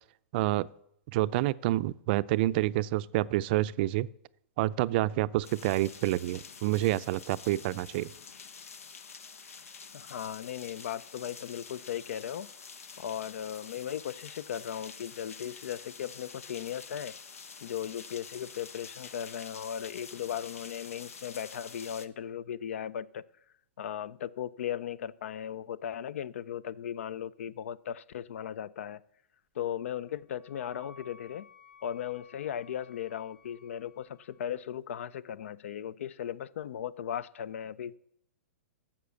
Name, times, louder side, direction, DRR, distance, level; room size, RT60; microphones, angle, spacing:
voice 1, 0.3-0.7 1.1-4.1 4.6-8.1, right 16 dB, 45° right, 16 dB, 0.4 m, -28 dB
sound 1, 5.4-22.1, left 5 dB, 85° left, 0.9 m, -48 dB
voice 2, 9.9-12.5 13.0-17.2 17.6-23.2 23.8-29.0 29.6-31.5 31.8-38.0, left 9 dB, 70° left, 21 dB, 0.5 m, -37 dB
Wind instrument woodwind instrument, 29.8-34.6, left 4 dB, 35° left, 3.9 m, -57 dB
11.0 x 7.2 x 7.0 m, 0.74 s
hypercardioid pair, 130°, 7 cm